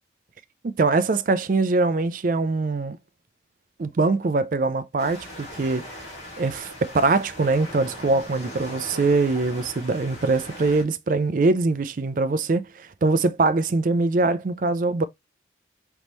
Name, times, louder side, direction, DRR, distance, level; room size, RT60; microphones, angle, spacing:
voice 1, 0.6-3.0 3.8-5.9 6.4-15.1, right 3 dB, 45° right, 0.4 m, -23 dB
sound 1, 5.0-10.8, left 1 dB, 40° left, 1.9 m, -40 dB
4.0 x 3.5 x 3.0 m
head